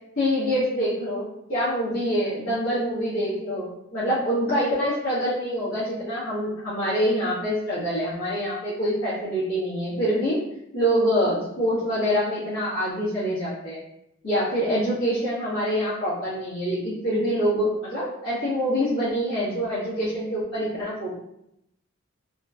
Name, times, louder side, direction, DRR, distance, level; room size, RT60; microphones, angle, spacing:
voice 1, 0.2-10.4 10.7-13.8 14.2-21.1, equal, 90° left, -12 dB, 1.1 m, -25 dB
3.1 x 2.1 x 2.4 m, 0.79 s
head